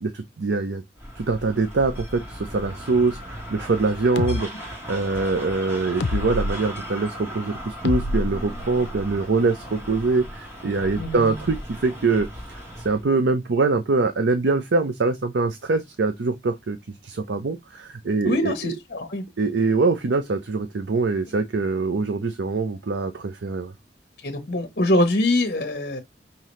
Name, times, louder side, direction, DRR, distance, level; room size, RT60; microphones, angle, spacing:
voice 1, 0.0-0.8 1.2-11.6 11.8-16.8 17.0-18.5 19.4-23.7, right 3 dB, 80° right, 0.6 m, -24 dB
sound 1, 1.0-13.1, equal, 15° right, 1.4 m, -37 dB
sound 2, 4.2-4.4 6.0-6.5 7.8-9.0, left 2 dB, 80° left, 0.5 m, -26 dB
voice 2, 11.0-11.5 18.2-19.2 24.2-26.0, left 1 dB, 55° left, 1.0 m, -24 dB
5.7 x 2.8 x 3.1 m
head